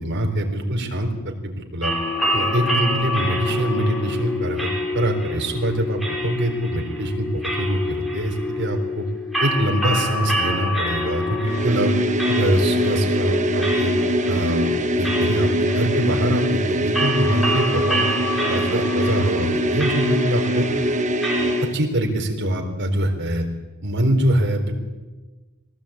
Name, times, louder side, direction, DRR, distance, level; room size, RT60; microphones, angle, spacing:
voice 1, 0.0-1.9 2.3-9.1 9.4-11.9 12.3-13.9 14.3-18.0 18.5-20.6 21.7-23.4 23.8-24.7, right 1 dB, 55° right, 3 dB, 3.9 m, -23 dB
sound 1, 1.8-21.6, left 1 dB, ahead, 4.8 m, -26 dB
sound 2, 11.4-21.8, right 1 dB, 35° right, 1.3 m, -24 dB
22.0 x 18.0 x 8.7 m, 1.2 s
head